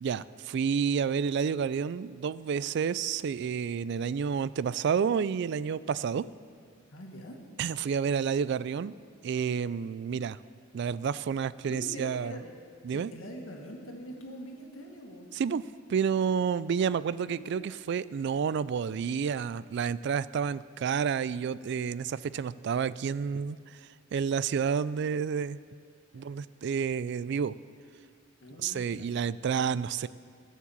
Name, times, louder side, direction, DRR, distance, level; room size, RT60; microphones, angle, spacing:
voice 1, 0.0-6.2 7.6-8.9 9.2-10.4 10.7-12.3 12.8-13.1 15.3-15.6 15.9-23.8 24.1-25.6 26.1-27.5 28.6-30.1, right 6 dB, 60° right, 18 dB, 0.3 m, -30 dB
voice 2, 6.9-7.4 11.7-12.5 12.9-15.3 17.0-17.6 26.1-26.3 28.4-29.1, equal, 85° left, 1 dB, 1.9 m, -44 dB
14.5 x 7.4 x 7.3 m, 2.2 s
head